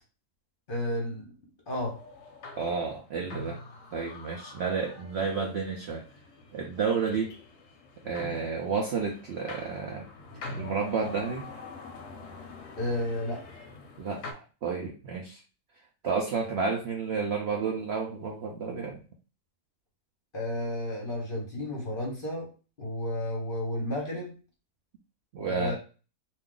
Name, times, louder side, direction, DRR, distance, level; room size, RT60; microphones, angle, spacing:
voice 1, 0.7-1.3 1.7-2.0 12.8-13.4 20.3-22.5 22.8-24.3 25.5-25.7, left 1 dB, 45° left, -2 dB, 0.9 m, -32 dB
sound 1, 1.8-14.3, left 3 dB, 65° left, 0.9 m, -45 dB
voice 2, 2.5-3.6 3.9-6.0 6.5-7.3 8.0-10.1 10.6-11.5 14.0-15.4 16.0-19.0 25.3-25.7, right 5 dB, 65° right, 1 dB, 0.6 m, -31 dB
2.6 x 2.4 x 3.6 m, 0.35 s
omnidirectional pair, 1.6 m